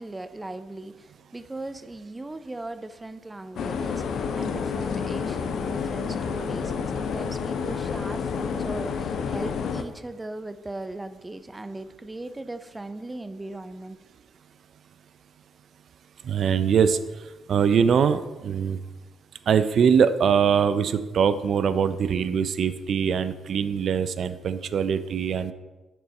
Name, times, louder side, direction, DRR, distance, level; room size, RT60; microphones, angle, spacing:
voice 1, 0.0-14.0, right 2 dB, 20° right, 12 dB, 0.6 m, -38 dB
sound 1, 3.5-9.8, left 6 dB, 65° left, 0.6 m, -29 dB
voice 2, 16.2-17.0 17.5-18.8 19.5-25.5, right 7 dB, 60° right, 13 dB, 0.5 m, -22 dB
6.8 x 6.2 x 4.2 m, 1.1 s
hypercardioid pair, 45°, 0 cm